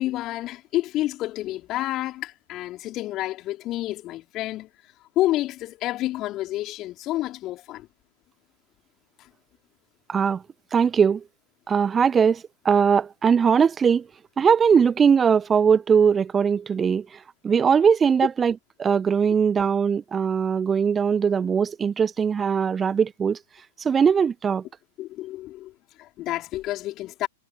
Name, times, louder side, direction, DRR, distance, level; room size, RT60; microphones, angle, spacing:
voice 1, 0.0-4.7 5.2-7.9 25.0-25.7 26.0-27.3, left 15 dB, 30° left, 3.6 m, -29 dB
voice 2, 10.1-10.4 10.7-11.2 11.7-14.1 14.4-17.1 17.4-23.4 23.8-24.6, right 6 dB, 15° right, 0.4 m, -20 dB
figure-of-eight pair, 100°, 0 cm